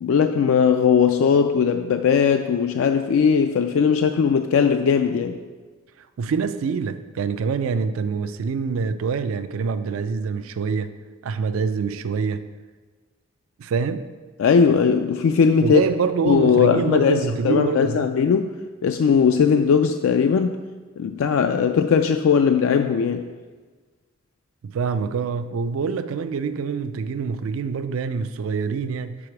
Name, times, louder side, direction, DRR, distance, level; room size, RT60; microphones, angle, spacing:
voice 1, 0.0-5.4 14.4-15.8 16.2-18.5 18.8-20.6 21.0-23.3, left 6 dB, 85° left, 7 dB, 0.3 m, -19 dB
voice 2, 6.2-11.0 11.2-12.5 13.6-14.1 15.6-18.1 24.6-29.2, right 5 dB, 90° right, 11 dB, 0.4 m, -25 dB
4.9 x 4.9 x 5.9 m, 1.4 s
head